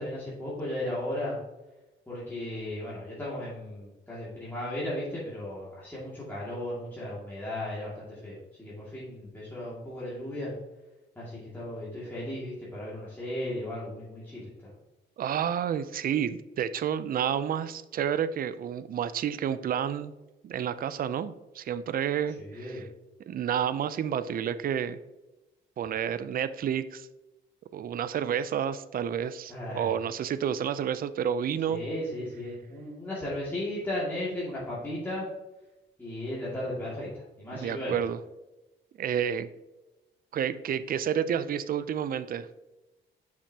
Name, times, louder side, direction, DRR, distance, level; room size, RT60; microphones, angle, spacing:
voice 1, 0.0-1.4 2.1-10.5 11.2-14.7 22.3-22.8 29.5-29.9 31.7-35.3 36.0-38.0, left 1 dB, 10° left, -8 dB, 2.2 m, -35 dB
voice 2, 15.2-20.1 20.4-22.8 23.3-25.0 25.8-27.1 27.7-31.8 37.6-38.2 39.0-39.5 40.3-42.5, right 8 dB, 45° right, 14 dB, 0.4 m, -30 dB
6.4 x 6.0 x 2.8 m, 1.0 s
cardioid pair, 90°, 20 cm